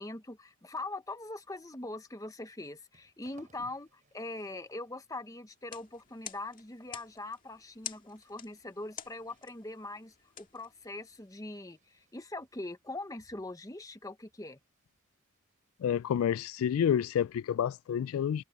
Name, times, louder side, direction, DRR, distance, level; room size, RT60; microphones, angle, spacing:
voice 1, 0.0-14.6, left 2 dB, 15° left, 1.0 m, -42 dB
sound 1, 2.2-17.3, right 3 dB, 35° right, 6.7 m, -72 dB
sound 2, 5.5-11.4, left 9 dB, 40° left, 2.0 m, -49 dB
voice 2, 15.8-18.4, left 9 dB, 85° left, 0.3 m, -29 dB
head